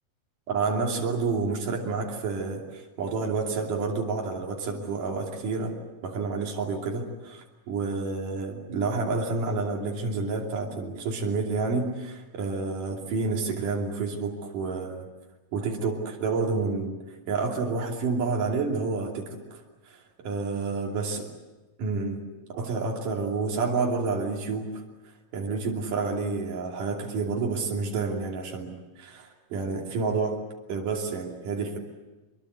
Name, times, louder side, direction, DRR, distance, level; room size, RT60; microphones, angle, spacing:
voice 1, 0.5-5.8 6.0-15.1 15.5-17.0 17.3-19.6 19.9-21.2 21.8-22.2 22.5-24.8 25.3-30.4 30.7-31.8, right 4 dB, 80° right, 0 dB, 4.5 m, -29 dB
25.5 x 22.5 x 8.1 m, 1.2 s
omnidirectional pair, 3.7 m